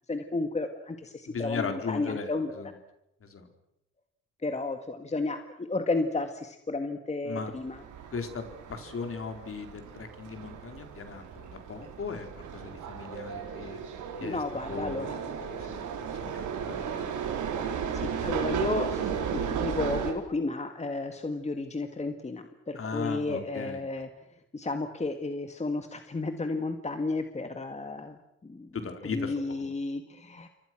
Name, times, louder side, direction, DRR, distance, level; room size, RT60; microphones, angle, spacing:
voice 1, 0.1-2.6 4.4-7.8 14.2-15.2 17.9-24.1 24.5-28.7 29.0-30.5, left 3 dB, 20° left, 7 dB, 2.0 m, -33 dB
voice 2, 1.3-2.7 3.2-3.5 7.2-7.5 8.1-8.4 8.7-12.3 12.5-13.8 14.2-14.4 14.7-15.2 15.5-15.8 16.2-17.1 22.8-23.8 28.7-29.3 29.6-29.7, left 5 dB, 45° left, 6 dB, 4.3 m, -37 dB
sound 1, 7.5-20.1, right 7 dB, 75° right, 4.4 m, -35 dB
28.5 x 24.0 x 6.2 m, 0.81 s
cardioid pair, 90°, 30 cm